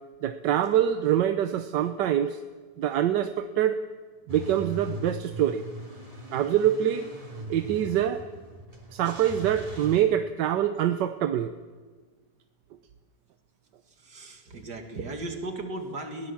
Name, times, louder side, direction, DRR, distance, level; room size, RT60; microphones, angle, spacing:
voice 1, 0.2-2.4 2.8-3.8 4.3-5.7 6.3-7.1 7.5-8.2 8.9-11.5, right 10 dB, 90° right, 9 dB, 1.4 m, -25 dB
Car / Engine starting / Idling, 4.3-10.0, right 1 dB, 20° right, 3.0 m, -40 dB
voice 2, 13.8-16.3, right 2 dB, 75° right, 4 dB, 2.9 m, -36 dB
22.0 x 16.5 x 7.2 m, 1.4 s
omnidirectional pair, 1.8 m